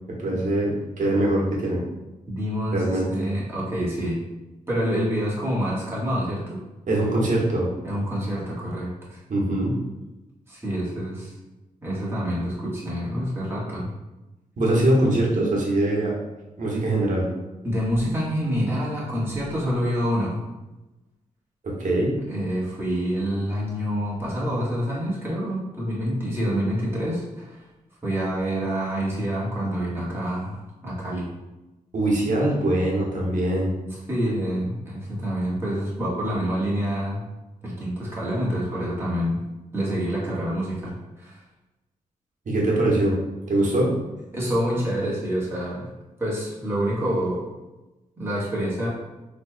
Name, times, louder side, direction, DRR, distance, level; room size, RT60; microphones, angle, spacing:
voice 1, 0.1-1.8 2.7-3.0 6.9-7.7 9.3-9.7 14.6-16.2 16.6-17.3 21.6-22.2 31.9-33.7 42.5-43.2 43.5-43.9, right 1 dB, 60° right, -3 dB, 1.2 m, -22 dB
voice 2, 2.3-4.2 4.7-6.6 7.8-9.2 10.5-11.3 11.8-13.9 17.6-20.4 22.3-27.6 28.0-31.3 33.9-37.2 37.6-39.4 39.7-41.4 44.3-45.9 46.2-47.4 48.2-48.9, equal, 15° right, -7 dB, 1.4 m, -27 dB
4.1 x 3.0 x 2.2 m, 1.0 s
cardioid pair, 75°, 15 cm